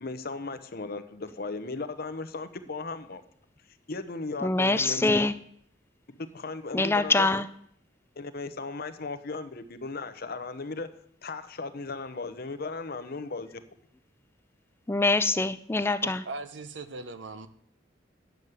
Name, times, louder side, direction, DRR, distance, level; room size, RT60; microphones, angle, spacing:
voice 1, 0.0-3.2 3.9-5.1 6.1-7.3 8.2-10.9 11.2-13.6, left 3 dB, 55° left, 10 dB, 0.9 m, -36 dB
voice 2, 4.4-5.3 6.7-7.5 14.9-16.2, left 2 dB, 15° left, 12 dB, 0.4 m, -24 dB
voice 3, 16.0-17.5, right 3 dB, 70° right, 11 dB, 0.9 m, -39 dB
9.3 x 7.2 x 8.1 m, 0.68 s
head